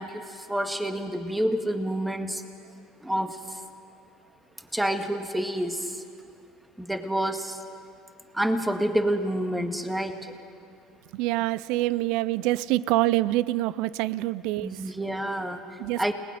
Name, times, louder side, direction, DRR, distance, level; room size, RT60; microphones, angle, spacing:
voice 1, 0.0-2.4 3.0-3.6 4.6-6.0 6.8-7.6 8.3-10.3 14.6-15.6 16.0-16.1, right 1 dB, 5° right, 6 dB, 2.0 m, -28 dB
voice 2, 11.1-14.8 15.8-16.1, right 17 dB, 70° right, 19 dB, 0.5 m, -26 dB
29.5 x 19.5 x 5.2 m, 2.5 s
hypercardioid pair, 80°, 0 cm